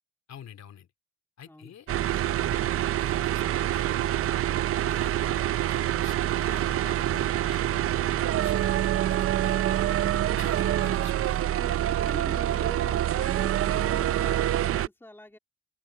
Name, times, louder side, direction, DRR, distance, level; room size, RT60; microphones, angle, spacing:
voice 1, 0.3-0.9 1.4-4.1 4.8-9.7 10.1-11.5, left 9 dB, 60° left, 2.8 m, -48 dB
voice 2, 1.4-1.7 9.6-9.7 11.5-15.4, left 1 dB, 10° left, 2.6 m, -45 dB
sound 1, 1.9-14.9, right 12 dB, 50° right, 0.5 m, -26 dB
open air
cardioid pair, 90°, 30 cm